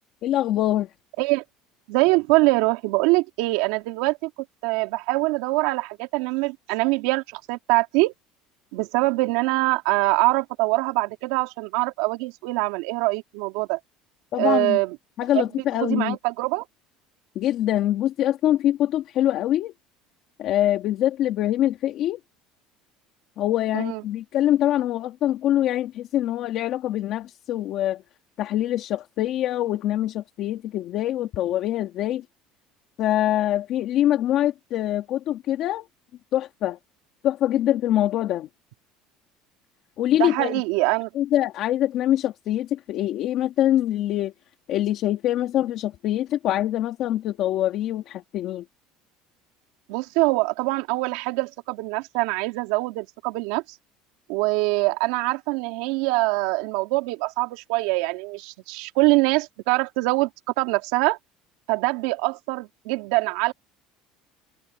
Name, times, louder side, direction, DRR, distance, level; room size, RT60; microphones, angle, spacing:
voice 1, 0.2-0.9 14.3-14.8 15.2-16.2 17.4-19.7 20.4-22.2 23.4-28.0 28.4-32.2 33.0-35.9 36.3-36.8 37.2-38.5 40.0-40.6 41.1-44.3 44.7-48.6, left 12 dB, 40° left, 2.2 m, -24 dB
voice 2, 1.9-4.3 4.6-8.1 8.7-13.8 14.4-14.9 15.3-15.4 15.8-16.7 23.7-24.0 40.2-41.1 49.9-53.6 54.3-60.3 60.6-61.2 61.7-63.5, right 22 dB, 75° right, 3.0 m, -23 dB
cardioid pair, 175°, 0 cm